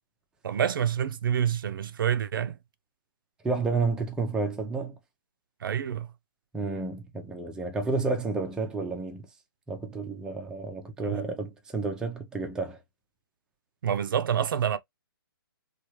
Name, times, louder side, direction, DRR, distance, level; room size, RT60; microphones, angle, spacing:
voice 1, 0.4-2.6 5.6-6.1 11.0-11.2 13.8-14.8, right 9 dB, 65° right, 0.5 m, -27 dB
voice 2, 3.4-5.0 6.5-9.3 9.7-12.8, right 3 dB, 5° right, 0.5 m, -30 dB
3.0 x 2.3 x 3.0 m
hypercardioid pair, 145°, 12 cm